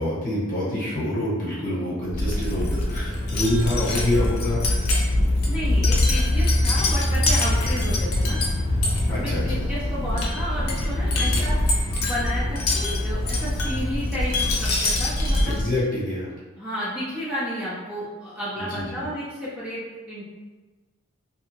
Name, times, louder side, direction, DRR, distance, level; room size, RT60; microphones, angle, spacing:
voice 1, 0.0-4.6 9.1-9.6 11.1-11.4 15.4-16.3 18.6-19.0, left 1 dB, 40° left, -7 dB, 1.0 m, -26 dB
Wind chime, 2.1-15.8, left 1 dB, 75° left, 0.6 m, -23 dB
voice 2, 5.5-8.4 9.1-15.6 16.6-19.8 20.1-20.2, equal, 5° right, -10 dB, 0.5 m, -32 dB
2.7 x 2.3 x 2.9 m, 1.3 s
head